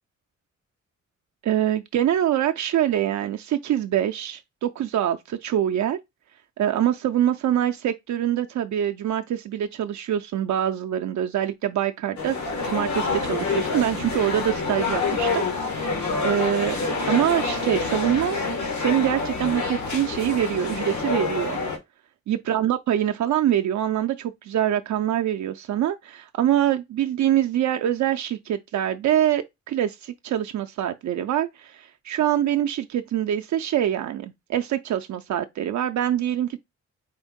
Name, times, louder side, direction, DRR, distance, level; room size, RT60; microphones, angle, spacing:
voice 1, 1.4-6.0 6.6-12.4 12.6-15.4 15.7-16.8 17.1-18.4 18.8-21.6 22.3-36.6, right 11 dB, 75° right, 0.5 m, -24 dB
sound 1, 12.2-21.8, left 4 dB, 80° left, 1.2 m, -27 dB
4.4 x 2.6 x 3.6 m
cardioid pair, 100°, 29 cm